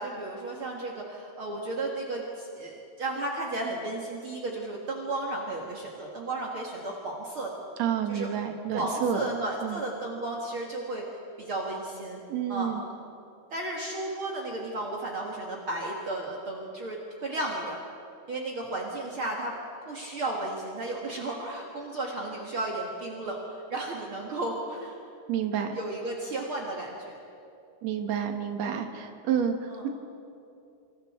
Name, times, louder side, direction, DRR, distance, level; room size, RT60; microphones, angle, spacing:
voice 1, 0.0-7.5 8.1-8.3 8.7-11.0 11.4-12.2 12.5-12.7 13.5-17.8 18.3-19.5 19.8-25.0 25.8-27.2 29.7-29.8, right 2 dB, 50° right, -2 dB, 2.6 m, -34 dB
voice 2, 7.8-9.3 9.6-9.8 12.3-12.8 25.3-25.8 27.8-29.9, right 8 dB, 65° right, 5 dB, 2.7 m, -29 dB
27.5 x 26.5 x 4.5 m, 2.6 s
omnidirectional pair, 3.4 m